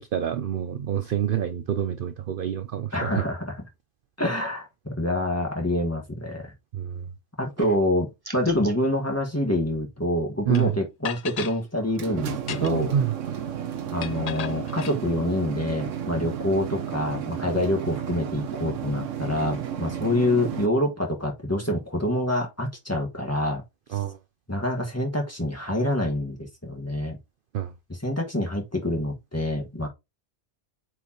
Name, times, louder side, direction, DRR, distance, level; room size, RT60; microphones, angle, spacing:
voice 1, 0.1-3.2 6.7-7.0 10.5-10.7 12.6-13.1 23.9-24.2 27.5-27.7, right 10 dB, 60° right, 0.7 m, -27 dB
voice 2, 2.9-3.6 4.2-6.5 7.4-12.9 13.9-23.6 24.5-27.2 27.9-29.9, left 1 dB, 10° left, 1.7 m, -26 dB
sound 1, 8.2-8.8, right 3 dB, 20° right, 1.0 m, -41 dB
sound 2, 10.5-10.6 11.0-11.6 12.3-12.9 14.0-15.0, left 8 dB, 70° left, 0.3 m, -35 dB
sound 3, 11.8-20.7, right 9 dB, 85° right, 1.2 m, -33 dB
8.1 x 4.8 x 3.0 m
omnidirectional pair, 1.3 m